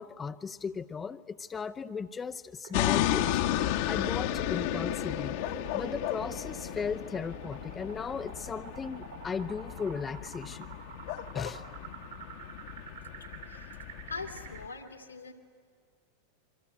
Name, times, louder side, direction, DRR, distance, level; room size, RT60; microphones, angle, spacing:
voice 1, 0.0-3.3 3.9-5.4 5.7-10.7 11.3-11.6, left 5 dB, 20° left, 9 dB, 0.6 m, -36 dB
sound 1, 2.6-14.6, right 8 dB, 65° right, 3.0 m, -47 dB
sound 2, 2.7-14.7, left 13 dB, 50° left, 1.1 m, -34 dB
voice 2, 13.4-13.8 14.1-15.3, left 4 dB, 80° left, 5 dB, 2.3 m, -42 dB
27.0 x 24.5 x 8.9 m, 2.2 s
figure-of-eight pair, 90°, 0 cm